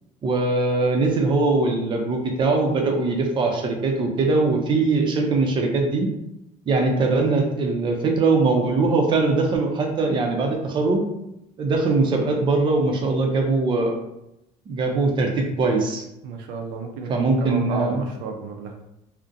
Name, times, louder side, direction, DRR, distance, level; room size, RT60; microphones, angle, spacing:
voice 1, 0.2-6.1 6.7-11.0 11.6-14.0 14.7-16.0 17.1-18.0, right 3 dB, 35° right, 2 dB, 0.5 m, -21 dB
voice 2, 16.2-18.8, right 4 dB, 85° right, 2 dB, 0.5 m, -33 dB
2.4 x 2.1 x 2.6 m, 0.84 s
cardioid pair, 115°, 15 cm